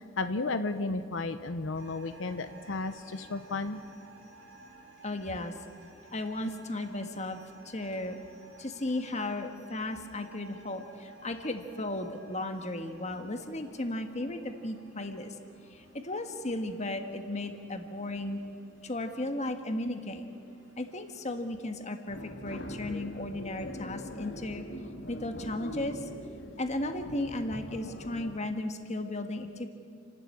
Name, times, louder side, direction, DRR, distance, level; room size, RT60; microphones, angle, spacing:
voice 1, 0.0-3.8, left 3 dB, 85° left, 10 dB, 0.8 m, -33 dB
sound 1, 1.7-21.6, right 2 dB, 80° right, 3.2 m, -55 dB
voice 2, 5.0-5.5 6.1-7.4 7.6-8.2 8.6-15.3 15.7-18.4 18.8-20.3 20.8-24.7 25.1-26.1 26.6-29.7, left 1 dB, 35° left, 6 dB, 1.6 m, -35 dB
sound 2, 22.1-28.3, left 1 dB, 60° left, 1.8 m, -42 dB
30.0 x 12.0 x 8.7 m, 2.2 s
head